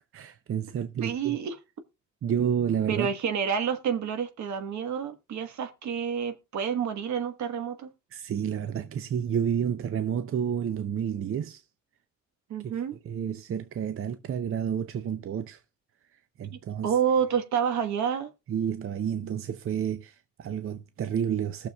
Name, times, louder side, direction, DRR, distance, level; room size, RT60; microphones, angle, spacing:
voice 1, 0.1-1.4 2.2-3.1 8.1-11.6 12.6-12.7 13.0-15.6 16.4-16.9 18.5-21.7, right 8 dB, 45° right, 0.6 m, -30 dB
voice 2, 1.0-1.6 2.9-7.9 12.5-13.0 16.8-18.3, right 7 dB, 70° right, 1.4 m, -28 dB
20.0 x 6.7 x 2.3 m
cardioid pair, 90°, 30 cm